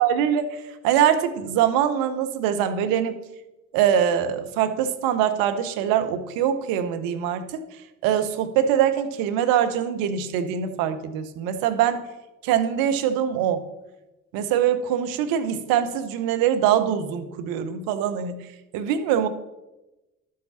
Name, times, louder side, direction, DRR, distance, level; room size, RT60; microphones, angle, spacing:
voice 1, 0.0-3.2 3.7-7.6 8.0-12.0 12.4-13.6 14.3-18.4 18.7-19.3, right 9 dB, 70° right, 9 dB, 1.0 m, -23 dB
11.5 x 7.5 x 4.2 m, 1.0 s
hypercardioid pair, 45°, 36 cm